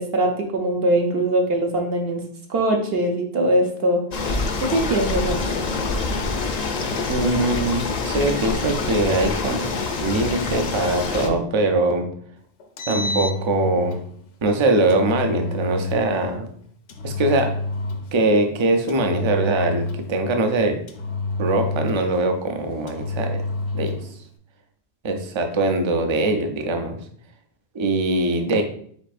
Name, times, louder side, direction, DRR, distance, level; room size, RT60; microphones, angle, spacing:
voice 1, 0.0-2.2 2.5-4.0 4.7-5.4 12.9-13.2, right 1 dB, 60° right, 1 dB, 0.9 m, -22 dB
sound 1, 4.1-11.3, left 3 dB, 50° left, 0.5 m, -26 dB
voice 2, 7.1-9.7 10.0-12.1 12.9-14.0 14.4-16.5 17.0-17.5 18.1-20.8 21.4-23.4 23.7-24.0 25.0-27.0 27.7-28.6, right 2 dB, 45° right, 5 dB, 0.4 m, -22 dB
Engine, 12.6-14.1 14.9-16.1 16.9-18.2 18.9-20.2 20.9-22.2 22.9-24.1, left 2 dB, 80° left, 1.0 m, -29 dB
5.2 x 4.1 x 2.5 m, 0.62 s
omnidirectional pair, 1.2 m